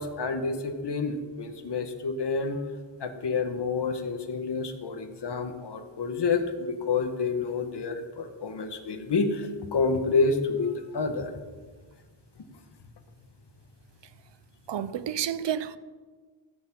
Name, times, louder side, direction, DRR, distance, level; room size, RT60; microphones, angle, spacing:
voice 1, 0.0-2.6 3.0-11.3, left 4 dB, 55° left, 1.3 m, -29 dB
voice 2, 14.7-15.8, right 9 dB, 65° right, 0.7 m, -30 dB
15.5 x 7.0 x 5.9 m
wide cardioid pair, 110°, 47 cm